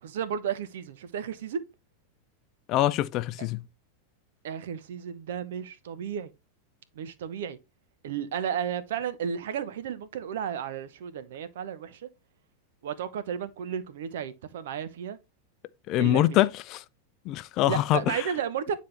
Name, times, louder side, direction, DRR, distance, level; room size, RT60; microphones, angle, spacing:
voice 1, 0.0-1.6 4.4-6.3 6.9-7.6 8.0-12.1 12.8-15.2 16.0-16.4 17.6-18.8, right 8 dB, 55° right, 0.9 m, -33 dB
voice 2, 2.7-3.6 15.9-16.8 17.3-18.3, left 14 dB, 40° left, 0.5 m, -24 dB
9.6 x 4.1 x 3.2 m
figure-of-eight pair, 90°, 0 cm